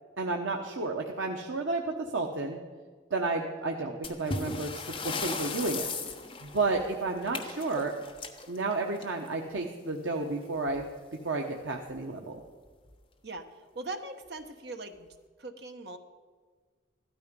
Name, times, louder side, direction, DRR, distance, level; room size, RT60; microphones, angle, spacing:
voice 1, 0.2-2.6 3.1-5.9 6.4-7.9 8.5-10.8 11.2-12.4, right 3 dB, 90° right, 1 dB, 1.2 m, -31 dB
sound 1, 4.0-9.4 10.7-10.8 11.1-11.2 11.9-12.0 12.7-12.9, left 4 dB, 25° left, 1.1 m, -37 dB
voice 2, 13.7-15.1 15.4-16.0, right 2 dB, 55° right, 7 dB, 1.2 m, -40 dB
15.5 x 13.0 x 5.3 m, 1.5 s
head